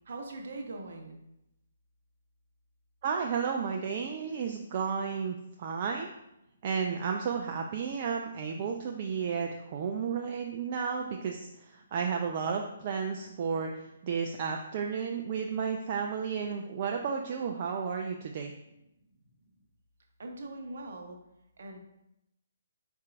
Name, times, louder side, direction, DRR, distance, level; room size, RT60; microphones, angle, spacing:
voice 1, 0.1-1.1 20.2-21.2 21.6-21.8, right 2 dB, 55° right, 2 dB, 0.7 m, -41 dB
voice 2, 3.0-6.1 6.6-18.5, right 6 dB, 40° right, 3 dB, 0.3 m, -33 dB
4.5 x 4.3 x 2.4 m, 0.86 s
figure-of-eight pair, 130°, 0 cm